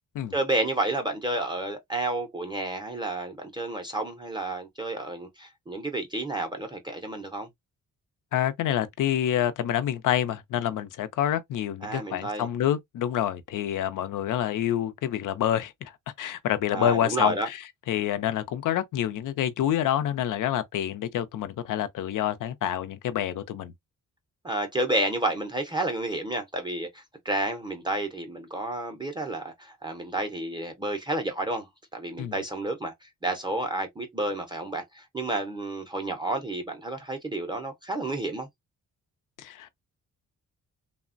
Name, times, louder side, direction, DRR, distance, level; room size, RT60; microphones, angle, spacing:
voice 1, 0.3-7.5 11.8-12.5 16.7-17.5 24.4-38.5, right 2 dB, 15° right, 0.4 m, -31 dB
voice 2, 8.3-15.9 16.2-23.7 32.2-32.3 39.4-39.8, left 11 dB, 70° left, 0.5 m, -27 dB
3.2 x 2.1 x 2.4 m
wide cardioid pair, 155°, 32 cm